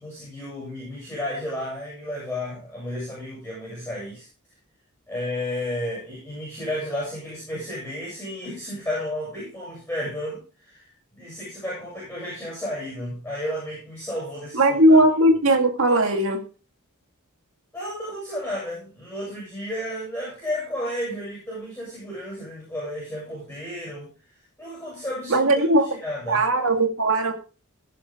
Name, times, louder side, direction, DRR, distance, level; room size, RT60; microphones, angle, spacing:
voice 1, 0.0-4.3 5.1-10.9 11.1-15.0 17.7-24.1 24.6-25.5 25.8-26.4, left 1 dB, 10° left, 7.5 m, -32 dB
voice 2, 14.6-16.4 25.3-25.9 26.3-27.3, right 1 dB, 65° right, 2.3 m, -18 dB
17.0 x 7.3 x 3.8 m
head